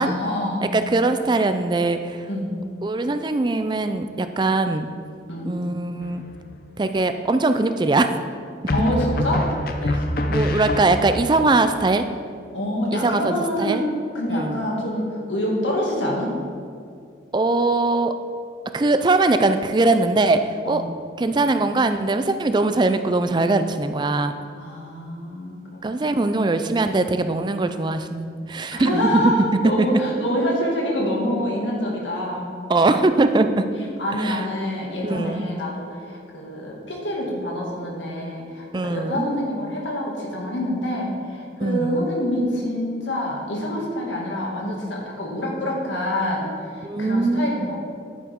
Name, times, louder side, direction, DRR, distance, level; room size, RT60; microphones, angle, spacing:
voice 1, 0.0-0.8 2.3-2.5 5.3-5.5 8.7-9.5 9.9-10.1 12.5-16.3 20.7-20.9 24.5-26.4 28.7-32.5 33.8-47.8, left 1 dB, 85° left, -2 dB, 2.2 m, -26 dB
voice 2, 0.7-2.3 2.8-4.9 5.4-6.2 6.8-8.2 9.9-10.0 10.3-12.1 12.9-13.8 14.3-14.6 17.3-18.1 18.7-20.8 21.2-24.3 25.8-29.3 29.8-30.0 32.7-33.6 34.1-34.5 35.0-35.4 38.7-39.2 41.6-42.1 46.8-47.7, right 2 dB, 25° right, 9 dB, 0.4 m, -21 dB
sound 1, 6.0-6.6 8.7-11.3, left 1 dB, 50° left, 0.6 m, -25 dB
10.0 x 9.3 x 3.6 m, 2.4 s
head